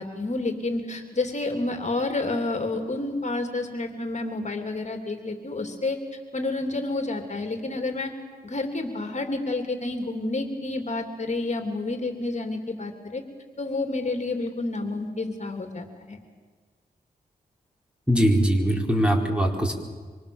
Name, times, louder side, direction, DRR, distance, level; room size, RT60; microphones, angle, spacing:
voice 1, 0.0-6.0 6.3-8.1 8.4-13.2 13.6-16.2, left 2 dB, 45° left, 5 dB, 3.0 m, -29 dB
voice 2, 18.1-19.8, equal, 5° right, 2 dB, 4.5 m, -21 dB
25.5 x 25.5 x 7.1 m, 1.5 s
cardioid pair, 70°, 16 cm